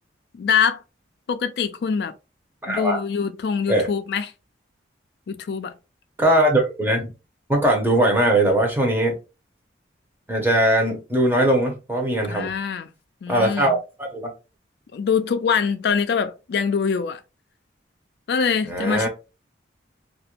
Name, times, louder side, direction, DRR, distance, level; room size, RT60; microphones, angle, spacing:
voice 1, 0.3-0.8 1.3-2.1 2.7-4.3 5.3-5.7 12.2-12.9 13.2-13.7 14.9-17.2 18.3-19.1, left 6 dB, 55° left, 0.3 m, -24 dB
voice 2, 2.6-3.0 3.7-3.9 6.2-7.1 7.5-9.1 10.3-12.5 13.3-14.3 18.7-19.1, right 1 dB, 10° right, 0.6 m, -20 dB
2.4 x 2.1 x 2.8 m
head